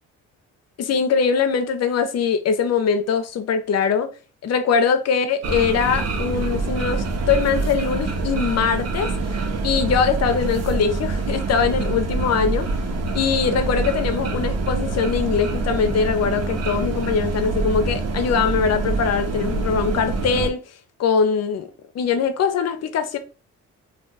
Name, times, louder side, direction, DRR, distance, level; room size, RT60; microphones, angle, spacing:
voice 1, 0.8-4.1 4.4-9.1 9.6-12.7 13.1-20.6 21.0-21.7 21.9-23.2, left 6 dB, 60° left, 0.6 m, -22 dB
sound 1, 5.4-20.5, right 3 dB, 55° right, 0.8 m, -25 dB
2.4 x 2.3 x 3.8 m
cardioid pair, 90°, 30 cm